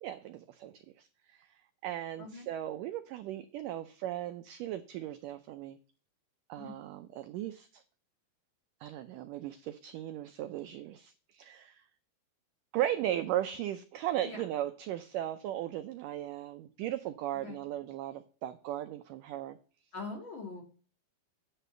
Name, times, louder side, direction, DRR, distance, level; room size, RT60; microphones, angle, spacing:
voice 1, 0.0-5.8 6.5-7.8 8.8-11.8 12.7-19.6, right 12 dB, 85° right, 9 dB, 1.9 m, -37 dB
voice 2, 19.9-20.6, left 3 dB, 45° left, 2 dB, 1.9 m, -42 dB
10.0 x 4.1 x 6.7 m, 0.40 s
omnidirectional pair, 4.5 m